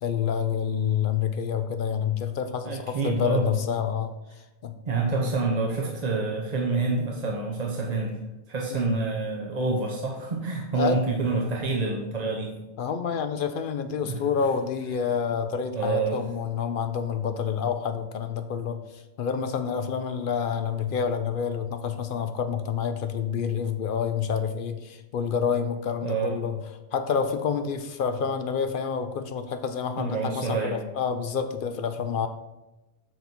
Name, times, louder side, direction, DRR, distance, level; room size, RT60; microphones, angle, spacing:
voice 1, 0.0-4.1 4.6-4.7 8.7-8.9 10.7-11.0 12.8-26.6 26.9-32.3, left 7 dB, 60° left, 9 dB, 0.6 m, -28 dB
voice 2, 2.6-3.5 4.9-8.2 8.5-12.6 14.0-14.2 15.7-16.2 26.0-26.4 30.0-30.8, right 3 dB, 40° right, -1 dB, 0.8 m, -27 dB
7.6 x 4.0 x 4.4 m, 1.0 s
omnidirectional pair, 1.2 m